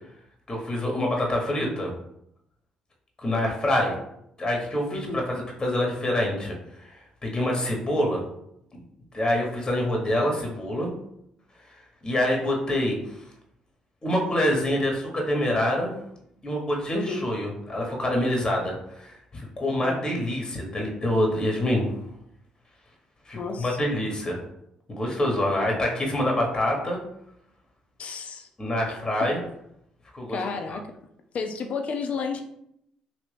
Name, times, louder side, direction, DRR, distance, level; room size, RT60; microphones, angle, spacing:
voice 1, 0.5-1.9 3.2-4.0 4.4-8.2 9.1-10.9 11.7-13.2 14.0-15.9 16.4-21.9 23.3-24.4 24.9-27.0 28.6-29.4 30.1-30.4, left 1 dB, 30° left, 0 dB, 1.2 m, -26 dB
voice 2, 4.9-5.2 16.9-17.3 19.8-20.1 23.3-23.8 28.0-28.5 28.9-29.3 30.3-30.8 31.3-32.4, left 4 dB, 55° left, 4 dB, 0.6 m, -32 dB
3.0 x 2.9 x 3.3 m, 0.76 s
hypercardioid pair, 50°, 3 cm